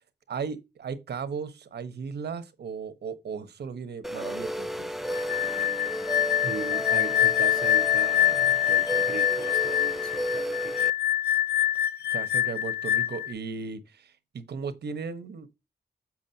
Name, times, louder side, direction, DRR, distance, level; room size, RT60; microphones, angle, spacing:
voice 1, 0.3-4.9 12.1-15.5, right 5 dB, 85° right, 1.1 m, -36 dB
sound 1, 4.0-10.9, equal, ahead, 0.3 m, -33 dB
sound 2, 5.1-13.3, left 12 dB, 75° left, 0.4 m, -25 dB
voice 2, 6.4-10.8, right 6 dB, 60° right, 0.9 m, -38 dB
7.3 x 6.0 x 2.8 m
wide cardioid pair, 155°, 17 cm